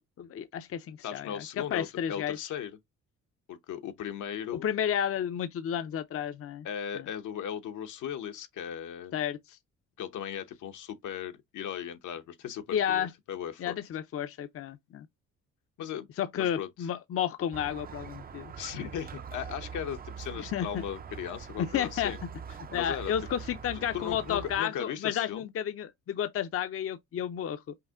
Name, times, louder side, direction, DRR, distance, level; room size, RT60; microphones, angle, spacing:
voice 1, 0.2-2.4 4.5-6.7 7.0-7.1 9.1-9.6 12.7-13.1 13.6-15.1 16.2-18.5 20.5-20.8 21.6-22.1 22.7-27.6, left 9 dB, 50° left, 0.6 m, -32 dB
voice 2, 1.0-2.8 3.5-4.6 6.6-9.1 10.0-13.8 15.8-16.1 16.3-16.7 18.6-22.2 22.7-23.1 23.9-25.5, left 9 dB, 80° left, 1.0 m, -37 dB
Squeak, 17.5-24.6, right 6 dB, 30° right, 0.5 m, -43 dB
5.6 x 2.1 x 3.7 m
cardioid pair, 90°, 30 cm